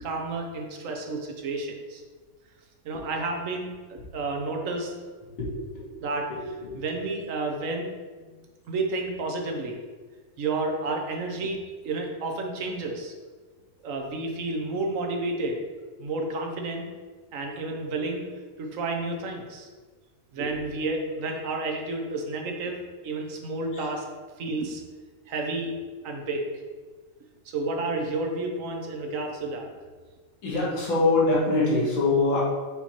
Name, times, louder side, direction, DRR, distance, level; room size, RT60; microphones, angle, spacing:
voice 1, 0.0-2.0 2.8-4.9 6.0-7.9 8.3-8.4 8.7-9.8 10.4-13.1 13.8-15.6 16.0-16.9 17.3-18.2 18.6-19.7 20.3-24.1 24.4-24.8 25.3-25.8 26.0-26.5 27.4-29.7, right 2 dB, 70° right, 2 dB, 0.7 m, -31 dB
voice 2, 5.4-5.8 6.7-6.8 30.4-32.4, left 3 dB, 65° left, -6 dB, 2.3 m, -23 dB
5.4 x 4.4 x 4.4 m, 1.4 s
omnidirectional pair, 2.4 m